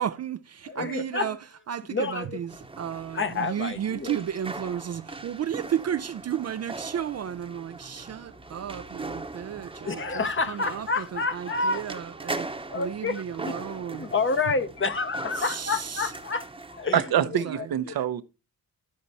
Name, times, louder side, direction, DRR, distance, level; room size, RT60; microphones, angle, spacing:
voice 1, 0.0-1.4 1.7-14.1 15.4-16.1 17.2-18.0, right 9 dB, 45° right, 0.4 m, -33 dB
voice 2, 0.7-1.4 1.9-2.4 3.1-4.2 9.8-11.8 12.4-13.5 13.9-16.4 16.7-17.0 17.9-18.0, left 4 dB, 35° left, 0.8 m, -29 dB
sound 1, 2.5-17.0, right 3 dB, 15° right, 0.9 m, -40 dB
voice 3, 16.9-18.2, right 10 dB, 75° right, 0.8 m, -25 dB
12.5 x 4.3 x 4.1 m
cardioid pair, 100°, 36 cm